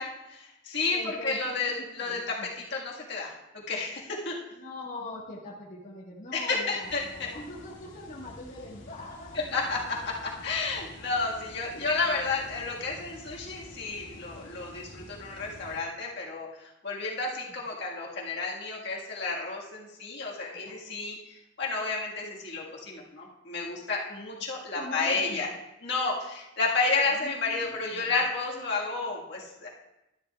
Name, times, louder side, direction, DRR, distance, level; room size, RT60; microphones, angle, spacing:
voice 1, 0.0-4.4 6.3-7.3 9.3-25.5 25.8-29.7, left 3 dB, 60° left, -3 dB, 1.6 m, -31 dB
voice 2, 0.9-2.5 4.5-9.4 11.7-12.2 17.5-17.6 20.5-20.8 24.7-25.4 27.1-28.2, left 2 dB, 40° left, -4 dB, 1.4 m, -43 dB
sound 1, 6.8-15.8, left 1 dB, 80° left, 2.2 m, -49 dB
12.0 x 11.0 x 2.3 m, 0.93 s
head